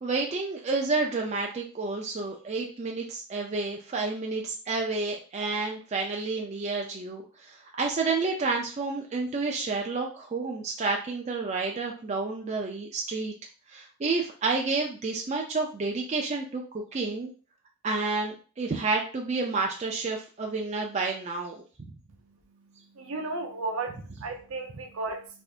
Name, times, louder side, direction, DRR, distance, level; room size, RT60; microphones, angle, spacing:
voice 1, 0.0-7.2 7.8-13.3 13.7-16.6 16.9-17.3 17.8-21.5, right 3 dB, 30° right, 0.4 m, -30 dB
voice 2, 22.9-25.3, right 3 dB, 70° right, 0.6 m, -34 dB
3.4 x 2.6 x 2.4 m
head